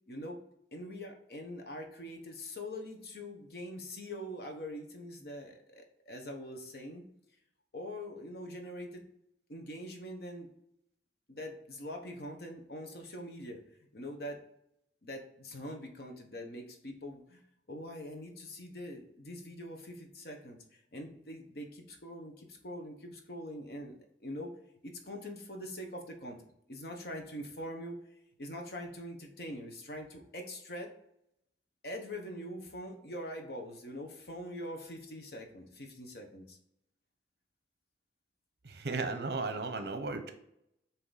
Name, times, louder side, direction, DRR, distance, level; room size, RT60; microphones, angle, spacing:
voice 1, 0.1-0.4 0.7-7.0 7.7-9.1 9.5-10.5 11.3-13.6 13.9-14.4 15.0-17.4 17.7-24.5 24.8-26.4 26.7-28.0 28.4-30.9 31.8-36.6, equal, 65° left, 2 dB, 1.1 m, -43 dB
voice 2, 38.6-40.3, right 3 dB, 70° right, 7 dB, 0.8 m, -35 dB
7.8 x 2.9 x 4.1 m, 0.76 s
head